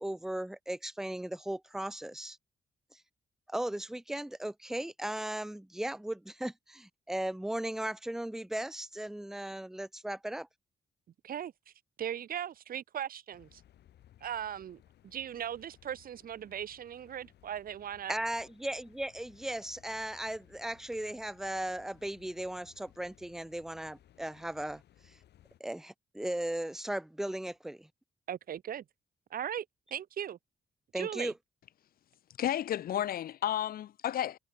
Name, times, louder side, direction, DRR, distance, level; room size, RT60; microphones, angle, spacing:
voice 1, 0.0-2.4 3.5-10.5 18.1-25.1 25.6-27.9 30.9-31.3, right 1 dB, 5° right, 0.5 m, -37 dB
voice 2, 11.2-11.7 12.0-13.6 14.2-18.2 28.3-28.8 29.3-29.7 29.9-30.4 30.9-31.3, right 10 dB, 60° right, 0.8 m, -38 dB
sound 1, 13.3-25.6, left 12 dB, 85° left, 1.2 m, -62 dB
voice 3, 32.4-34.4, left 11 dB, 60° left, 0.4 m, -32 dB
cardioid pair, 120°, 17 cm